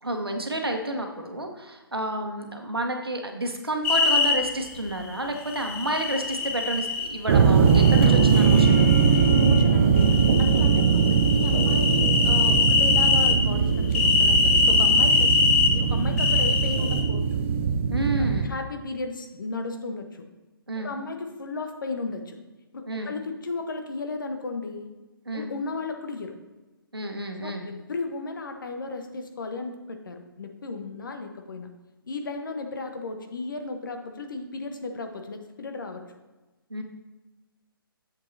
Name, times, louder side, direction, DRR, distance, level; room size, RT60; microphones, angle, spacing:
voice 1, 0.0-8.9 17.9-18.6 20.7-20.9 22.9-23.1 25.3-25.5 26.9-27.7 36.7-36.8, right 1 dB, 85° right, 4 dB, 1.2 m, -30 dB
sound 1, 3.8-4.3 5.5-7.1 7.7-9.6 10.0-13.4 13.9-15.7 16.2-17.0, left 4 dB, 35° left, 1.0 m, -23 dB
sound 2, 7.3-18.5, right 6 dB, 30° right, 0.5 m, -21 dB
voice 2, 9.1-17.2 18.2-20.2 20.8-22.4 22.7-24.9 25.3-26.4 27.4-31.7 32.1-36.0, left 3 dB, 60° left, 5 dB, 1.0 m, -34 dB
8.5 x 7.4 x 2.7 m, 1.2 s
figure-of-eight pair, 135°, 12 cm